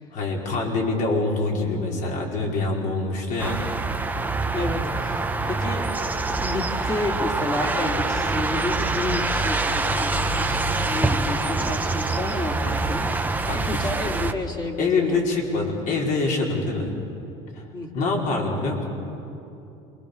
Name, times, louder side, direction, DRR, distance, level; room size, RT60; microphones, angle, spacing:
voice 1, 0.1-3.6 13.5-13.9 14.8-16.9 17.5-17.7 17.9-18.8, left 3 dB, 55° left, -1 dB, 5.2 m, -25 dB
sound 1, 3.4-14.3, right 3 dB, 10° right, 1.2 m, -25 dB
voice 2, 4.5-5.9 6.4-13.1 13.5-15.4 17.7-18.1, left 2 dB, 25° left, 1 dB, 3.2 m, -31 dB
28.0 x 23.0 x 7.0 m, 2.9 s
supercardioid pair, 110°, 15 cm